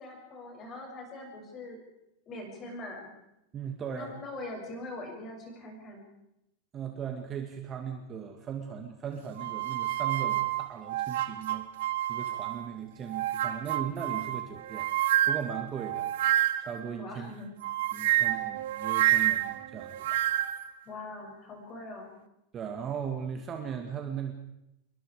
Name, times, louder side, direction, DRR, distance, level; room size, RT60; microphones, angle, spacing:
voice 1, 0.0-1.8 2.3-3.1 3.9-6.0 17.0-17.5 20.8-22.1, left 2 dB, 20° left, 1 dB, 7.4 m, -42 dB
voice 2, 3.5-4.1 6.7-11.7 12.1-16.1 16.6-17.3 17.9-20.2 22.5-24.3, right 7 dB, 20° right, 4 dB, 2.0 m, -38 dB
sound 1, 9.4-12.7 13.1-16.8 17.6-20.7, right 14 dB, 65° right, 1.5 m, -29 dB
28.0 x 23.0 x 5.0 m, 0.85 s
supercardioid pair, 170°, 0 cm